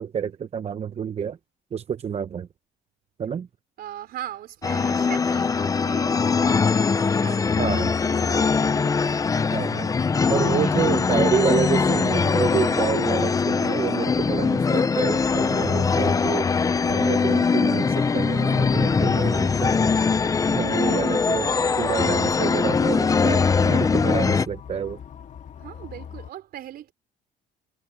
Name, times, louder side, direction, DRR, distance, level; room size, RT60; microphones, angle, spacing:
voice 1, 0.0-1.4 1.7-2.5 3.2-3.5 7.6-7.9 9.5-9.9 10.3-16.5 16.9-19.9 20.5-25.0, right 7 dB, 40° right, 0.8 m, -28 dB
voice 2, 3.8-9.7 10.1-10.9 12.6-13.0 20.3-20.7 25.6-26.9, right 12 dB, 65° right, 4.5 m, -40 dB
sound 1, 4.6-24.4, left 5 dB, 20° left, 0.5 m, -22 dB
sound 2, 18.3-26.3, left 8 dB, 45° left, 2.5 m, -41 dB
cardioid pair, 110°, 17 cm